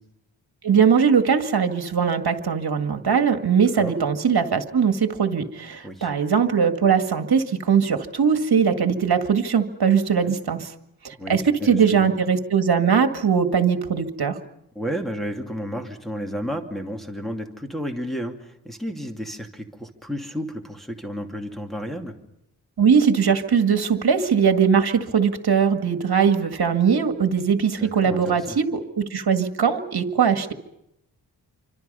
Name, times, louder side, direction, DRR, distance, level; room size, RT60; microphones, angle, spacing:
voice 1, 0.6-10.7 11.0-14.4 22.8-30.5, right 6 dB, 60° right, 7 dB, 2.0 m, -20 dB
voice 2, 11.2-12.1 14.7-22.1 27.8-28.6, equal, ahead, 3 dB, 2.6 m, -32 dB
28.0 x 25.5 x 5.5 m, 0.82 s
wide cardioid pair, 130°, 43 cm